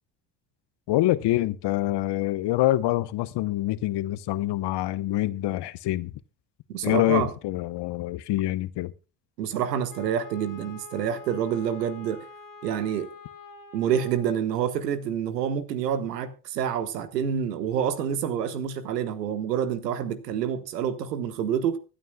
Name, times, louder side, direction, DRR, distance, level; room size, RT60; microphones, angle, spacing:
voice 1, 0.9-6.1 6.8-8.9, left 15 dB, 60° left, 0.9 m, -25 dB
voice 2, 6.7-7.3 9.4-12.2 12.6-13.1 13.7-21.8, right 8 dB, 85° right, 1.3 m, -27 dB
Wind instrument woodwind instrument, 9.9-14.4, left 4 dB, 40° left, 2.1 m, -46 dB
24.5 x 9.0 x 2.2 m
hypercardioid pair, 50°, 48 cm